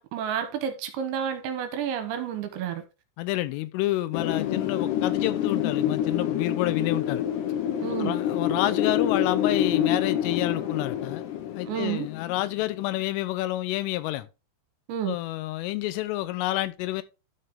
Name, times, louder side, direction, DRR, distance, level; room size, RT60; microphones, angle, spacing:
voice 1, 0.0-2.8 7.8-8.1 11.7-12.1 14.9-15.2, right 9 dB, 75° right, 3.0 m, -30 dB
voice 2, 3.2-7.2 8.0-11.3 11.5-14.3 15.1-17.0, left 16 dB, 85° left, 3.2 m, -29 dB
Wind, 4.1-12.8, left 10 dB, 70° left, 2.8 m, -27 dB
12.5 x 4.6 x 3.6 m
omnidirectional pair, 5.8 m